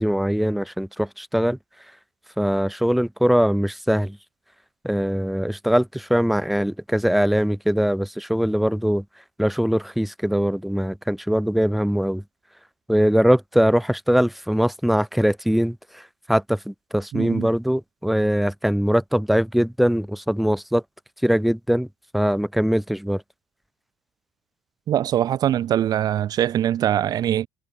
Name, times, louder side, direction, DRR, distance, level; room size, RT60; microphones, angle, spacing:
voice 1, 0.0-1.6 2.4-4.2 4.8-9.0 9.4-12.2 12.9-20.8 21.2-21.9 22.1-23.2, equal, ahead, 2.5 m, -22 dB
voice 2, 17.1-17.5 24.9-27.5, right 11 dB, 40° right, 3.4 m, -22 dB
cardioid pair, 160°, 10 cm